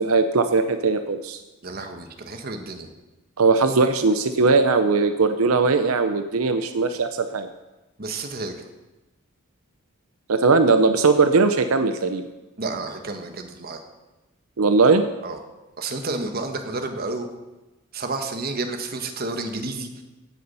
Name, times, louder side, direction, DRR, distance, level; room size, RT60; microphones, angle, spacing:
voice 1, 0.0-1.4 3.4-7.5 10.3-12.3 14.6-15.0, right 4 dB, 85° right, 9 dB, 0.7 m, -19 dB
voice 2, 1.6-2.9 8.0-8.6 12.6-13.8 15.2-15.4 15.8-17.3 17.9-20.0, right 3 dB, 45° right, 5 dB, 1.3 m, -30 dB
16.5 x 6.9 x 5.5 m, 1.1 s
head